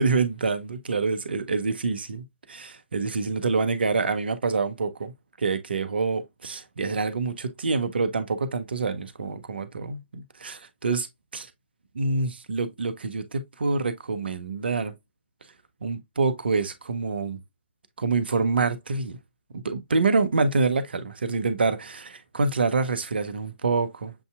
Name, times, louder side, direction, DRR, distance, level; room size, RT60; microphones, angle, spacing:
voice 1, 0.0-5.1 5.4-11.1 11.3-11.5 11.9-14.9 15.8-17.4 18.0-19.2 19.5-24.1, right 4 dB, 60° right, 0.7 m, -26 dB
7.0 x 2.6 x 2.3 m
figure-of-eight pair, 140°, 6 cm